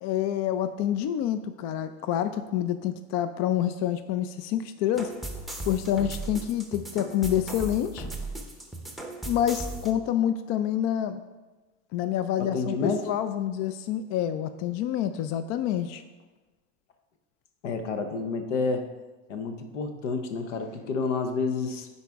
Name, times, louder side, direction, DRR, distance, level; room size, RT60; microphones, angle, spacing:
voice 1, 0.0-5.1 5.7-8.1 9.2-11.2 11.9-16.0, left 10 dB, 50° left, 11 dB, 0.4 m, -27 dB
sound 1, 5.0-9.9, right 2 dB, ahead, 0.6 m, -37 dB
voice 2, 12.4-13.1 17.6-18.9 19.3-21.9, left 4 dB, 85° left, 7 dB, 0.9 m, -29 dB
9.6 x 4.1 x 3.5 m, 1.2 s
supercardioid pair, 105°, 36 cm